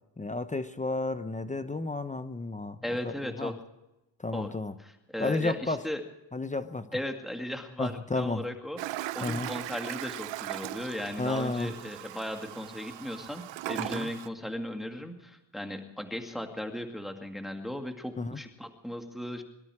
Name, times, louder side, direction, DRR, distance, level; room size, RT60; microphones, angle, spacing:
voice 1, 0.2-2.8 3.0-3.1 3.4-3.5 4.2-4.7 5.2-5.8 6.3-6.9 7.8-8.4 9.2-9.5 11.2-11.7 13.8-14.1 18.2-18.4, left 3 dB, 15° left, 10 dB, 0.9 m, -32 dB
voice 2, 2.8-3.6 4.3-4.5 4.8-6.0 6.9-19.4, left 1 dB, ahead, 4 dB, 2.1 m, -37 dB
Toilet flush, 8.8-14.3, right 17 dB, 80° right, 0.7 m, -38 dB
23.5 x 12.5 x 4.9 m, 0.94 s
cardioid pair, 90°, 43 cm